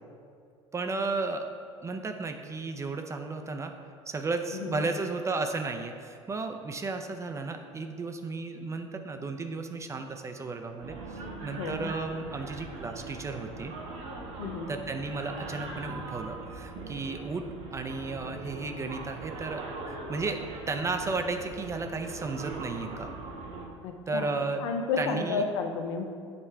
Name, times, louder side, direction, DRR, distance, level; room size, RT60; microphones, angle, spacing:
voice 1, 0.7-1.5 1.8-3.7 4.1-13.7 14.7-17.4 17.7-23.1 24.1-24.6 25.0-25.4, right 3 dB, 20° right, 5 dB, 0.4 m, -34 dB
voice 2, 4.5-4.9 11.5-11.9 14.4-14.8 23.8-26.0, left 5 dB, 65° left, 4 dB, 0.6 m, -32 dB
sound 1, 10.8-23.7, right 3 dB, 45° right, 1.0 m, -41 dB
7.3 x 3.1 x 4.5 m, 2.2 s
figure-of-eight pair, 70°, 16 cm